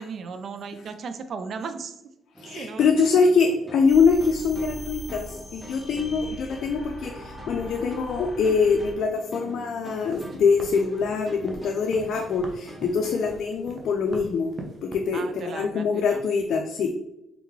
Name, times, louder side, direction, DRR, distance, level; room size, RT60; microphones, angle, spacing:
voice 1, 0.0-2.0 2.5-2.9 15.1-16.2, right 5 dB, 55° right, 9 dB, 0.4 m, -36 dB
sound 1, 2.3-13.5, right 1 dB, 10° right, 0.7 m, -44 dB
voice 2, 2.4-14.5 14.8-16.9, left 5 dB, 70° left, 3 dB, 0.4 m, -24 dB
sound 2, 3.9-8.9, equal, 10° left, 1.1 m, -41 dB
sound 3, 10.0-15.0, right 1 dB, 40° right, 0.8 m, -43 dB
3.6 x 3.6 x 3.1 m, 0.85 s
cardioid pair, 90°, 0 cm